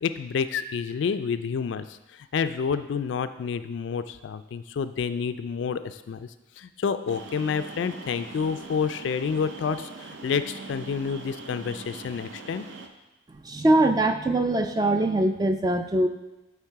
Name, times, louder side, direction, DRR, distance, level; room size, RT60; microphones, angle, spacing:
voice 1, 0.0-2.0 2.3-6.3 6.6-12.6, left 6 dB, 65° left, 11 dB, 0.3 m, -29 dB
sound 1, 7.1-12.9, right 3 dB, 65° right, 0.6 m, -42 dB
voice 2, 13.3-16.1, right 1 dB, 20° right, 6 dB, 0.3 m, -22 dB
8.4 x 3.5 x 4.6 m, 1.0 s
head